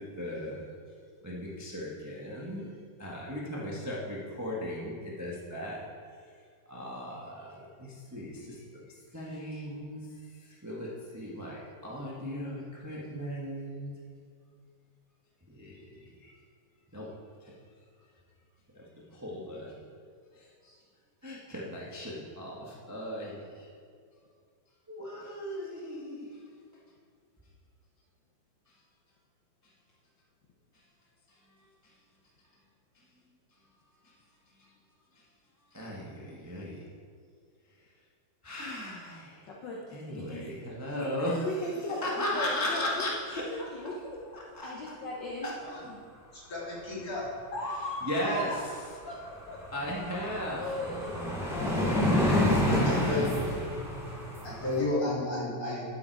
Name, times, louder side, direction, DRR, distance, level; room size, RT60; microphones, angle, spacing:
voice 1, 0.2-0.6 1.2-2.7 3.0-5.8 6.7-10.1 10.3-13.9 15.5-16.1 16.9-17.0 17.4-17.5 18.7-18.8 19.1-19.7 20.3-20.8 21.2-23.7 24.9-26.4 31.8-31.9 34.0-34.1 35.7-36.9 38.4-39.5 39.9-41.6 42.0-43.4 44.3-44.7 45.4-45.5 48.0-48.8 49.7-50.6 51.6-51.9 52.2-53.5, equal, 20° right, -5 dB, 0.4 m, -37 dB
voice 2, 9.3-9.6 39.5-40.5 40.9-43.1 43.5-44.2 44.6-45.5 47.5-48.6 49.0-49.6 50.6-51.9, left 1 dB, 65° left, -3 dB, 1.1 m, -37 dB
voice 3, 46.3-47.3 52.2-52.4 52.9-53.2 54.4-55.9, left 2 dB, 30° left, -7 dB, 3.2 m, -32 dB
sound 1, 48.7-48.8 49.1-54.8, left 1 dB, ahead, 2.7 m, -29 dB
12.0 x 7.6 x 4.7 m, 2.1 s
omnidirectional pair, 3.3 m